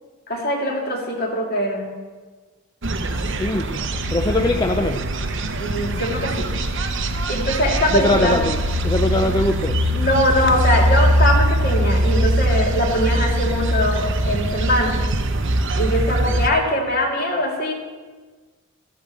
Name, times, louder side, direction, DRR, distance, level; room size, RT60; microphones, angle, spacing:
voice 1, 0.3-1.9 5.6-6.5 7.3-8.4 9.9-15.0 15.8-17.7, equal, 45° left, 0 dB, 2.4 m, -22 dB
sound 1, 2.8-16.5, right 1 dB, 55° right, 0.8 m, -22 dB
voice 2, 3.2-3.8 4.1-5.0 7.9-8.6 8.8-9.8, left 1 dB, 20° left, 4 dB, 0.5 m, -21 dB
13.5 x 8.4 x 7.5 m, 1.4 s
head